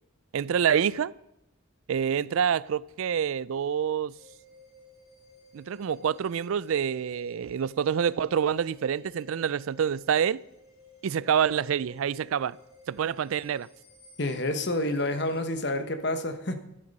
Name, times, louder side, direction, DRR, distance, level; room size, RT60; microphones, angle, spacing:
voice 1, 0.3-1.1 1.9-4.1 5.5-10.4 11.0-12.6 12.9-13.7, right 8 dB, 80° right, 0.4 m, -27 dB
sound 1, 4.1-15.4, left 1 dB, 85° left, 5.7 m, -54 dB
voice 2, 14.2-16.6, left 1 dB, 55° left, 1.1 m, -29 dB
12.0 x 11.5 x 5.4 m
head